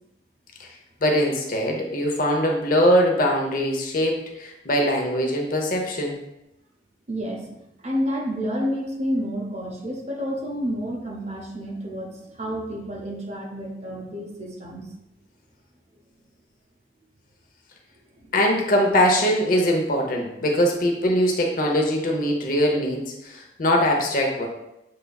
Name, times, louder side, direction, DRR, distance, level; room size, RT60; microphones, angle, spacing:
voice 1, 1.0-6.1 18.3-24.5, equal, 50° left, 1 dB, 0.8 m, -22 dB
voice 2, 7.1-14.9 18.1-18.3, equal, 35° right, 0 dB, 0.7 m, -30 dB
6.5 x 3.4 x 2.3 m, 0.88 s
head